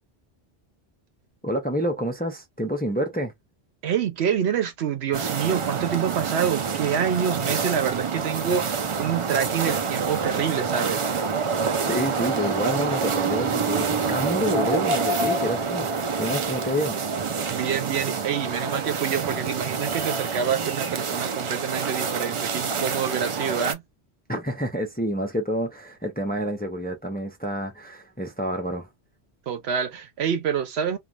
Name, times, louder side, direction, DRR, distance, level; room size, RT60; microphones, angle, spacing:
voice 1, 1.4-3.3 11.9-17.0 24.3-28.9, equal, 10° left, 0.6 m, -28 dB
voice 2, 3.8-11.1 17.5-23.8 29.5-31.0, right 8 dB, 80° right, 0.9 m, -27 dB
sound 1, 5.1-23.7, right 5 dB, 50° right, 0.3 m, -27 dB
3.0 x 2.3 x 2.4 m
omnidirectional pair, 1.1 m